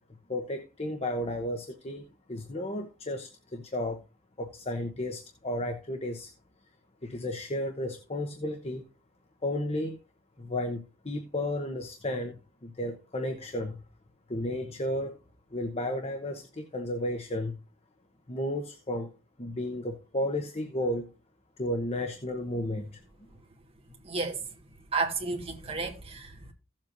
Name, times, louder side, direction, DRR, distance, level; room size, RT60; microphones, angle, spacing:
voice 1, 0.3-4.0 4.4-6.3 7.0-8.8 9.4-10.0 10.4-13.8 14.3-15.2 15.5-17.6 18.3-19.1 19.4-21.1 21.6-23.0, left 1 dB, 30° left, 1.0 m, -33 dB
voice 2, 24.0-24.4 24.9-26.5, right 4 dB, 30° right, 2.3 m, -32 dB
16.0 x 7.4 x 2.6 m
head